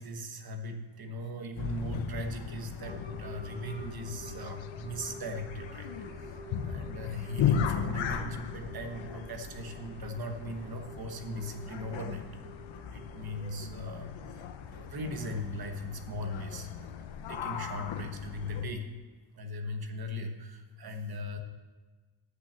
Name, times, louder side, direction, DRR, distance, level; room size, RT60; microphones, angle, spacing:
voice 1, 0.0-12.2 12.9-18.9 19.3-21.4, left 1 dB, 55° right, 5 dB, 1.2 m, -39 dB
sound 1, 1.6-18.7, left 8 dB, 85° left, 0.8 m, -37 dB
sound 2, 2.9-13.5, right 2 dB, 20° right, 0.8 m, -50 dB
9.8 x 5.8 x 7.4 m, 1.3 s
wide cardioid pair, 150°, 45 cm